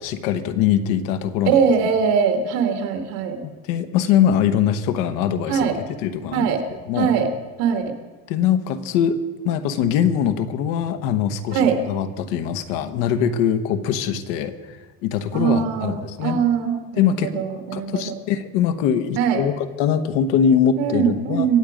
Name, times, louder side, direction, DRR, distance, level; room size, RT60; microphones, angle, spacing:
voice 1, 0.0-1.6 3.7-6.5 6.9-7.1 8.3-14.8 15.0-16.4 17.0-17.3 17.7-21.5, left 8 dB, 75° left, 10 dB, 1.2 m, -22 dB
voice 2, 1.5-3.4 5.5-5.8 6.3-6.6 7.0-7.3 7.6-7.9 11.5-11.8 15.3-18.1 19.2-19.4 20.8-21.6, right 7 dB, 80° right, 6 dB, 2.3 m, -21 dB
24.0 x 8.6 x 5.1 m, 1.3 s
cardioid pair, 160°, 38 cm